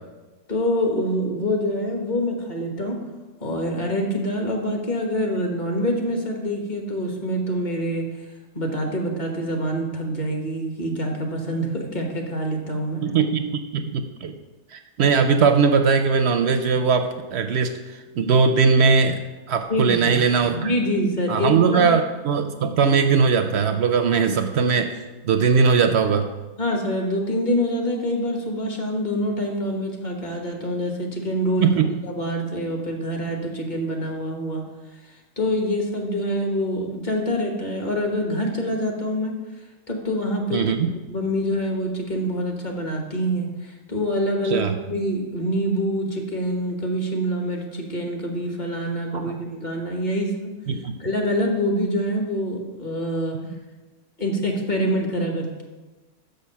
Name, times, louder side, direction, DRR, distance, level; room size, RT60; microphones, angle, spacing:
voice 1, 0.5-3.0 3.4-8.3 8.5-13.0 19.7-20.2 20.5-21.9 26.6-31.7 32.0-34.6 35.4-39.3 39.9-40.6 41.1-50.5 51.0-53.4 54.2-55.6, equal, 35° left, 2 dB, 1.3 m, -25 dB
voice 2, 13.0-14.3 14.7-17.8 18.2-19.2 19.5-20.7 21.3-24.9 25.2-26.3 31.6-31.9 40.5-40.9 44.5-44.7 49.1-49.3 50.7-50.9, right 5 dB, 65° right, 7 dB, 0.7 m, -20 dB
6.6 x 6.6 x 5.6 m, 1.2 s
omnidirectional pair, 1.5 m